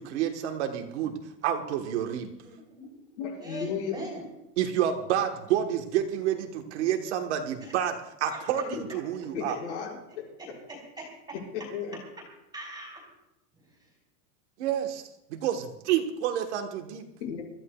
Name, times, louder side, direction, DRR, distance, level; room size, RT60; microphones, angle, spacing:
voice 1, 0.0-2.3 4.6-9.6 14.6-15.0 15.3-17.1, right 10 dB, 50° right, 4 dB, 1.3 m, -29 dB
voice 2, 2.4-2.9 3.4-4.3 7.6-7.7 8.3-8.4 9.5-9.6 10.4-11.1 12.5-13.1, right 1 dB, 10° right, 0 dB, 3.2 m, -41 dB
voice 3, 3.2-4.1 9.3-10.0 11.5-12.0 17.2-17.4, left 6 dB, 50° left, 0 dB, 5.8 m, -34 dB
27.0 x 14.0 x 2.3 m, 0.89 s
supercardioid pair, 180°, 46 cm